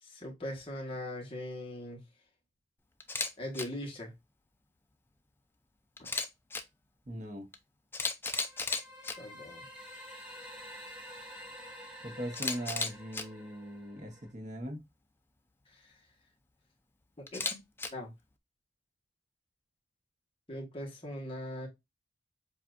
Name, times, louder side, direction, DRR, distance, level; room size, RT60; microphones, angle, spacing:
voice 1, 0.0-2.0 3.4-4.1 9.2-9.7 15.7-15.9 17.3-17.4 17.9-18.1 20.5-21.7, left 1 dB, 25° left, 1.3 m, -40 dB
Camera, 3.0-3.3 3.5-3.6 6.0-6.6 7.5-7.6 7.9-9.1 12.3-13.2 17.3-17.9, left 4 dB, 10° left, 0.4 m, -34 dB
voice 2, 7.1-7.5 12.0-14.8, equal, 40° right, 1.1 m, -40 dB
sound 1, 8.4-14.3, equal, 5° right, 1.1 m, -49 dB
7.0 x 2.6 x 2.5 m
head